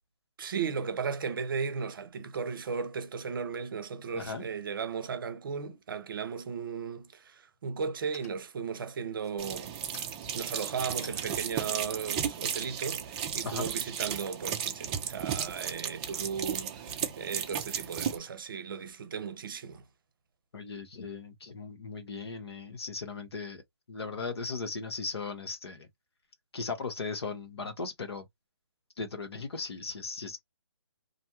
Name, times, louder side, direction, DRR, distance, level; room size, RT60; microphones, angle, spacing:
voice 1, 0.4-9.8 10.3-19.8, right 6 dB, 55° right, 0.7 m, -36 dB
voice 2, 4.1-4.4 13.4-13.7 20.5-23.6 23.9-25.9 26.5-28.2 29.0-30.4, left 4 dB, 70° left, 1.1 m, -37 dB
sound 1, 7.0-7.1 7.5-7.9 8.1-8.7 9.1-13.6, left 2 dB, 35° left, 1.3 m, -54 dB
sound 2, 9.4-18.2, right 9 dB, 20° right, 0.4 m, -34 dB
2.6 x 2.2 x 2.8 m
hypercardioid pair, 150°, 14 cm